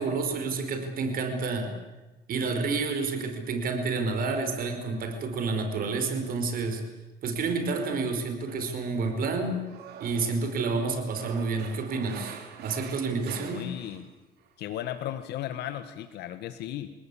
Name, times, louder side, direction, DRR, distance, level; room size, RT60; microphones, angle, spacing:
voice 1, 0.0-1.7 2.3-6.8 7.2-9.6 10.0-13.7, right 4 dB, 60° right, 6 dB, 5.0 m, -29 dB
Male speech man speaking, 7.9-8.1 8.5-14.1 14.4-14.5, right 8 dB, 75° right, 4.1 m, -46 dB
voice 2, 13.5-14.1 14.6-16.9, left 12 dB, 80° left, 10 dB, 1.5 m, -35 dB
29.0 x 18.5 x 8.6 m, 1.1 s
cardioid pair, 110°, 17 cm